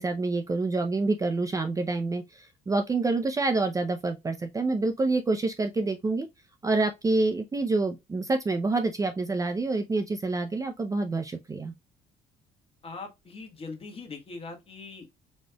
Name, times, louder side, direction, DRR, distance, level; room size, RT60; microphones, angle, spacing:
voice 1, 0.0-6.3 6.6-11.7, right 3 dB, 20° right, 0.5 m, -27 dB
voice 2, 12.8-15.1, left 3 dB, 35° left, 1.5 m, -41 dB
4.2 x 3.1 x 2.2 m
cardioid pair, 110°, 17 cm